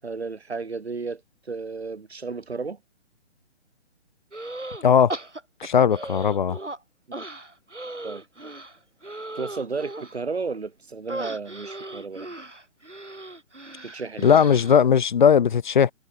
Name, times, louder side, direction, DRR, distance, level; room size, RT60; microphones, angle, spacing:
voice 1, 0.0-2.8 8.0-8.2 9.3-12.3 13.8-14.4, right 4 dB, 60° right, 6.7 m, -33 dB
sound 1, 4.3-4.8 5.1-6.8 7.1-10.2 11.1-14.8, right 2 dB, 80° right, 7.9 m, -37 dB
voice 2, 4.8-5.1 5.6-6.6 14.2-15.9, left 7 dB, 40° left, 1.4 m, -18 dB
figure-of-eight pair, 140°, 35 cm